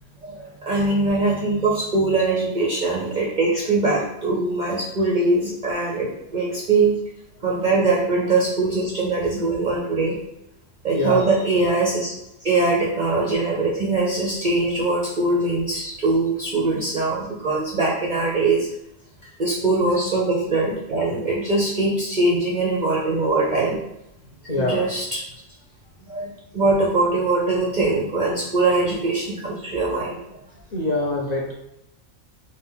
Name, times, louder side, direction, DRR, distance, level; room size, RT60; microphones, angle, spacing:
voice 1, 0.2-7.0 7.4-10.2 10.8-12.1 12.4-18.7 19.4-23.8 24.6-25.2 26.1-30.2, right 3 dB, 45° right, -3 dB, 0.6 m, -22 dB
voice 2, 10.9-11.3 12.4-12.7 24.5-24.9 28.5-28.8 30.5-31.5, left 2 dB, 35° left, -5 dB, 0.9 m, -26 dB
3.7 x 2.6 x 4.4 m, 0.85 s
omnidirectional pair, 1.3 m